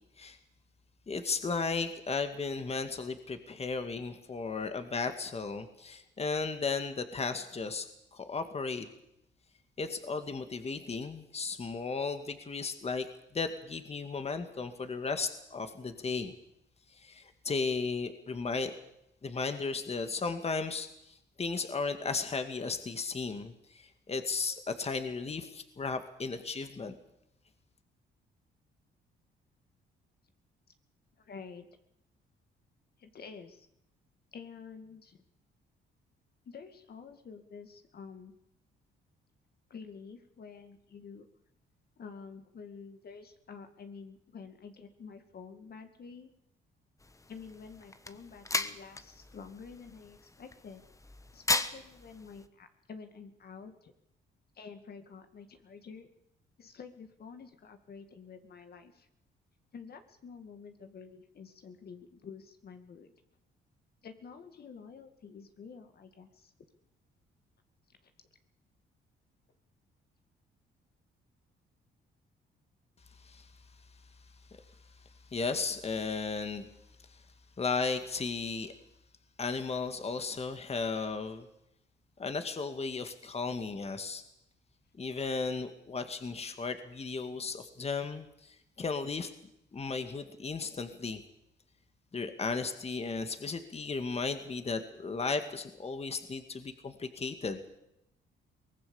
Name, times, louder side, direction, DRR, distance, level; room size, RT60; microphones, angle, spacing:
voice 1, 1.1-7.9 8.1-8.9 9.8-13.1 13.3-16.3 17.0-18.7 19.2-27.0 73.2-73.5 75.3-76.7 77.6-78.7 79.4-81.5 82.2-84.2 85.0-89.3 89.7-91.2 92.1-97.6, left 4 dB, 30° left, 8 dB, 2.0 m, -35 dB
voice 2, 31.2-31.7 33.0-33.7 34.3-35.2 36.5-38.3 39.7-41.3 42.0-46.3 47.3-50.8 51.3-53.9 54.5-56.1 56.6-59.1 59.7-63.1 64.0-66.5 68.0-68.1, left 5 dB, 50° left, 7 dB, 2.1 m, -49 dB
sound 1, 47.0-52.5, left 2 dB, 15° left, 1.3 m, -37 dB
24.0 x 19.0 x 7.1 m, 0.81 s
cardioid pair, 90°, 20 cm